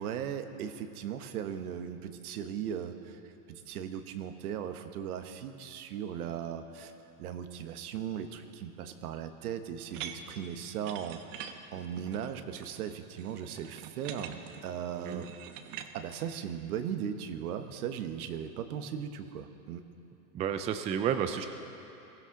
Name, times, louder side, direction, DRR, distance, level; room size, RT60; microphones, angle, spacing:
voice 1, 0.0-3.2 3.5-6.9 7.2-11.2 11.7-15.3 15.9-19.8, right 8 dB, 70° right, 8 dB, 1.3 m, -38 dB
sound 1, 9.9-15.9, right 9 dB, 55° right, 1.2 m, -45 dB
voice 2, 20.3-21.5, right 8 dB, 15° right, 8 dB, 0.4 m, -31 dB
22.0 x 15.0 x 3.8 m, 2.8 s
hypercardioid pair, 120°, 45 cm